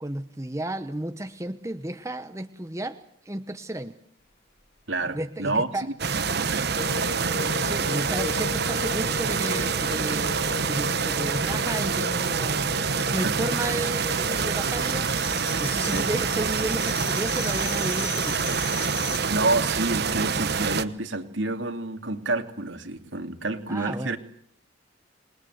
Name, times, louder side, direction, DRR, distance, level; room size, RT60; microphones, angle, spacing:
voice 1, 0.0-3.0 3.3-4.0 5.1-5.9 7.5-12.7 13.1-15.1 15.6-18.5 23.7-24.2, right 1 dB, 15° right, 9 dB, 1.0 m, -33 dB
voice 2, 4.9-5.7 6.1-6.7 13.2-13.3 15.9-16.1 19.3-24.2, right 2 dB, 70° right, 6 dB, 2.7 m, -28 dB
sound 1, 6.0-20.8, right 5 dB, 55° right, 1.1 m, -26 dB
sound 2, 6.8-16.5, left 4 dB, 70° left, 1.3 m, -37 dB
sound 3, 9.8-9.9 10.2-19.2, left 7 dB, 50° left, 6.1 m, -40 dB
27.5 x 21.5 x 8.0 m, 0.66 s
head